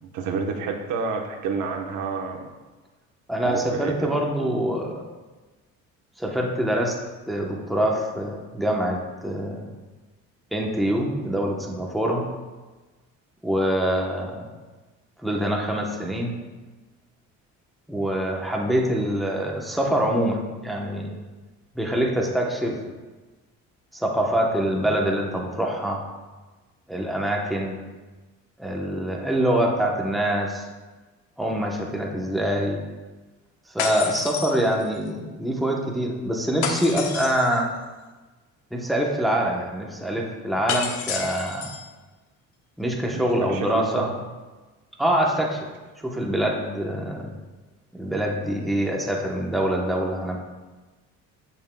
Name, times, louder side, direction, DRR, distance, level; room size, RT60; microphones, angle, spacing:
voice 1, 0.0-2.5 3.4-4.2 22.7-22.8 43.1-43.2 43.5-44.1, right 5 dB, 80° right, 3 dB, 1.1 m, -29 dB
voice 2, 3.3-5.0 6.2-7.0 7.3-9.7 10.5-12.3 13.4-14.5 15.2-16.3 17.9-21.2 21.7-22.8 23.9-26.0 26.9-27.8 28.6-30.6 31.4-32.8 33.7-37.7 38.7-41.7 42.8-44.1 45.0-45.7 46.0-47.3 47.9-50.4, right 1 dB, ahead, -1 dB, 0.9 m, -25 dB
sound 1, 33.8-35.1 36.6-37.6 40.7-41.9, left 6 dB, 75° left, 1.0 m, -30 dB
14.5 x 5.5 x 2.2 m, 1.2 s
cardioid pair, 140°, 30 cm